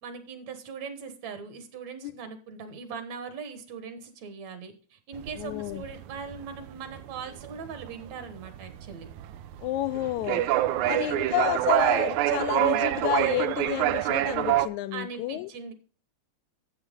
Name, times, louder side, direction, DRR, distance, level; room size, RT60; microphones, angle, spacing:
voice 1, 0.0-9.1 10.8-11.1 14.9-15.7, right 5 dB, 65° right, 2.5 m, -40 dB
sound 1, 5.1-14.7, right 13 dB, 85° right, 2.0 m, -26 dB
voice 2, 5.4-5.8 9.6-10.5 10.9-15.5, left 14 dB, 80° left, 2.0 m, -30 dB
12.0 x 8.0 x 3.7 m
omnidirectional pair, 3.4 m